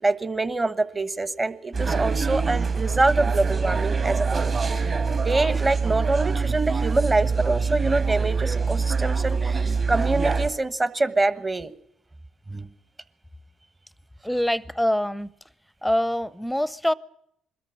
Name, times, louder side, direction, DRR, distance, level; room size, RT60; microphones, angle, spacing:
voice 1, 0.0-4.8 5.2-11.7 12.5-12.7, right 2 dB, 25° right, 14 dB, 1.3 m, -25 dB
sound 1, 1.7-10.5, right 4 dB, 45° right, 3.4 m, -24 dB
voice 2, 14.2-15.3 15.8-16.9, left 1 dB, ahead, 20 dB, 0.7 m, -24 dB
21.5 x 13.5 x 9.9 m, 0.77 s
supercardioid pair, 65°, 0 cm